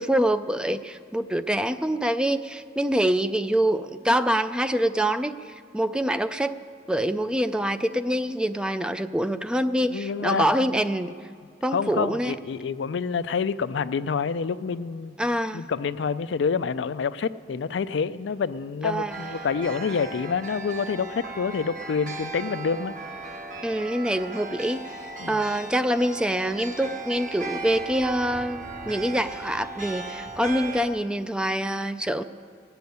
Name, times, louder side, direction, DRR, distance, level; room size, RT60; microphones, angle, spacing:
voice 1, 0.0-5.3 5.7-6.6 6.9-11.1 11.6-12.3 15.2-15.7 18.8-19.2 23.6-24.8 25.3-32.2, right 1 dB, 5° right, 11 dB, 0.3 m, -25 dB
voice 2, 9.9-10.8 11.7-15.2 15.5-22.9 25.2-25.4, left 5 dB, 75° left, 14 dB, 0.4 m, -27 dB
sound 1, 19.1-30.9, right 3 dB, 45° right, 1.3 m, -37 dB
17.0 x 6.9 x 9.3 m, 2.2 s
head